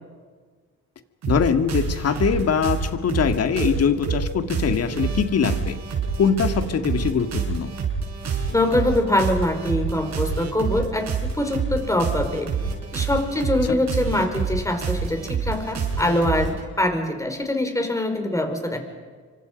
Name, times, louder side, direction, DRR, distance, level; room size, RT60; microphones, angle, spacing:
sound 1, 1.2-16.6, right 5 dB, 60° right, 5.9 m, -27 dB
voice 1, 1.3-5.8 6.2-7.7 13.7-13.8, left 6 dB, 55° left, 9 dB, 2.1 m, -22 dB
voice 2, 8.5-12.5 12.9-18.8, left 1 dB, 10° left, 5 dB, 4.9 m, -23 dB
27.0 x 24.5 x 5.3 m, 1.5 s
cardioid pair, 90°, 30 cm